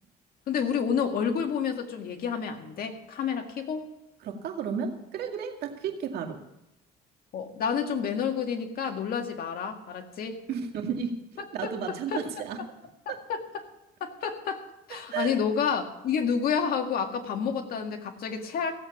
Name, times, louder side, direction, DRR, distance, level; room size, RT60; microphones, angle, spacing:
voice 1, 0.5-3.9 7.3-10.4 11.4-11.5 11.9-12.2 13.1-13.7 14.0-18.7, left 7 dB, 60° left, 5 dB, 1.9 m, -29 dB
voice 2, 4.2-6.4 10.5-12.6 13.1-13.2 14.9-15.4, right 7 dB, 70° right, 3 dB, 2.1 m, -33 dB
16.0 x 8.1 x 7.2 m, 0.92 s
cardioid pair, 110°, 17 cm